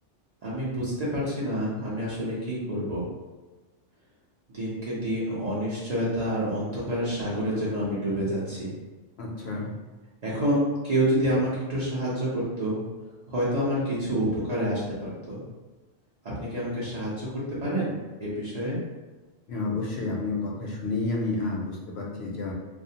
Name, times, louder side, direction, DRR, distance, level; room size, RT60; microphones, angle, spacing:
voice 1, 0.4-3.1 4.5-8.7 10.2-12.8 13.3-15.4 16.4-18.8, equal, 45° right, -8 dB, 0.5 m, -28 dB
voice 2, 9.2-9.7 19.5-22.5, left 3 dB, 65° left, -3 dB, 0.7 m, -30 dB
2.4 x 2.1 x 2.7 m, 1.2 s
omnidirectional pair, 1.3 m